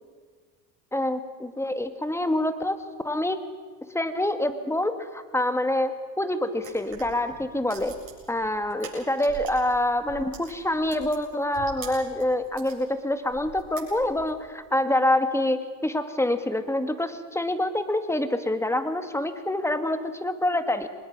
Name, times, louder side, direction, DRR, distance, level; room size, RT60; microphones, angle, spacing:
voice 1, 0.9-2.8 3.0-3.4 3.9-8.0 8.3-20.9, left 1 dB, 5° left, 9 dB, 1.7 m, -26 dB
sound 1, 6.6-9.7 10.0-12.8 13.3-14.4, right 6 dB, 55° right, 7.9 m, -44 dB
24.0 x 20.5 x 6.1 m, 1.5 s
supercardioid pair, 90°, 42 cm